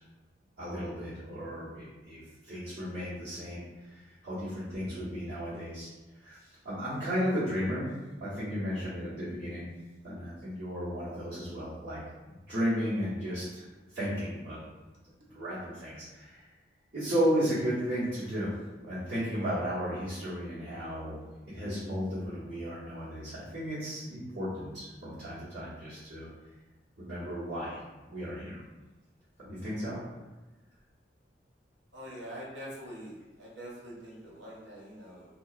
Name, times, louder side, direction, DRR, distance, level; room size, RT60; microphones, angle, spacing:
voice 1, 0.6-3.6 3.9-4.0 4.2-5.9 6.2-6.4 6.6-7.9 8.2-9.6 10.0-12.0 12.5-13.6 13.9-14.6 15.3-16.4 16.9-18.5 18.8-21.2 21.5-26.3 27.0-27.8 28.1-28.6 29.4-30.0, equal, 60° right, -14 dB, 1.1 m, -34 dB
voice 2, 31.9-35.3, equal, 85° right, -4 dB, 0.7 m, -44 dB
2.7 x 2.3 x 2.4 m, 1.1 s
head